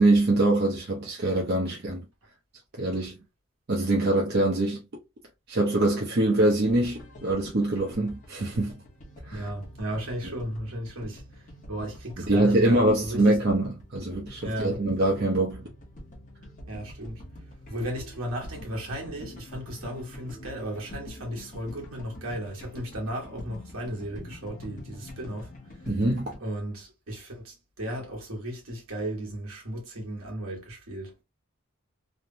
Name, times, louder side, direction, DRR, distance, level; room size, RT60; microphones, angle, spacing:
voice 1, 0.0-2.0 2.8-3.2 3.7-4.8 5.5-8.7 9.3-9.4 12.3-15.7 25.9-26.3, right 2 dB, 50° right, 0.7 m, -24 dB
sound 1, 6.6-26.4, left 1 dB, 35° left, 0.8 m, -45 dB
voice 2, 9.3-13.4 14.4-14.8 16.7-17.2 17.7-26.0 26.4-31.2, equal, 75° right, 1.4 m, -35 dB
3.2 x 2.0 x 2.6 m
head